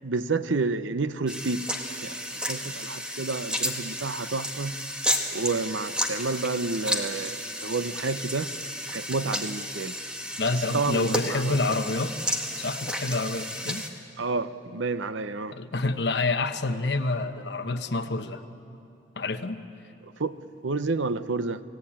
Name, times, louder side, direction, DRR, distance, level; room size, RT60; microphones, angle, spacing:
voice 1, 0.0-1.7 2.0-2.2 2.5-4.7 5.3-8.5 8.9-9.9 10.7-11.6 14.2-15.6 20.2-20.4 20.6-21.6, right 3 dB, 80° right, 13 dB, 0.8 m, -29 dB
sound 1, 1.3-13.9, equal, 5° right, 1.6 m, -32 dB
voice 2, 10.4-12.1 12.6-13.8 15.5-18.4 19.2-19.6, left 2 dB, 60° left, 8 dB, 1.1 m, -28 dB
29.5 x 18.5 x 8.8 m, 2.8 s
head